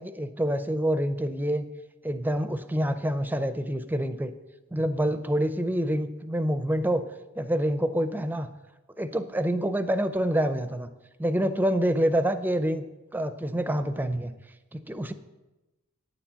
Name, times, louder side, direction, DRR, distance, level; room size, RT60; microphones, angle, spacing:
voice 1, 0.0-1.6 2.0-4.3 4.7-7.1 7.4-8.5 9.0-10.9 11.2-12.8 13.1-14.3 14.7-15.1, equal, 10° right, 10 dB, 0.5 m, -27 dB
9.6 x 7.2 x 7.4 m, 1.1 s
head